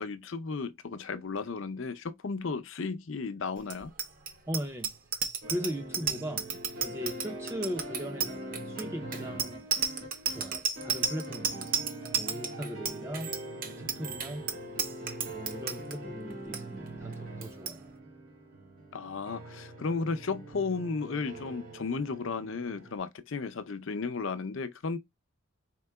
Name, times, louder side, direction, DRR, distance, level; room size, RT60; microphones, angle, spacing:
voice 1, 0.0-3.9 18.9-25.0, left 4 dB, 65° left, 0.6 m, -34 dB
Bicycle bell, 3.6-15.9 16.3-16.6 16.9-17.2 17.4-17.8, right 6 dB, 40° right, 0.7 m, -33 dB
voice 2, 4.5-4.9 5.5-6.5 6.8-9.6 10.3-11.7 12.1-13.3 13.6-14.4 15.3-17.8, equal, 10° right, 0.4 m, -38 dB
sound 1, 5.4-23.0, right 1 dB, 80° right, 2.1 m, -43 dB
4.5 x 3.7 x 2.2 m
head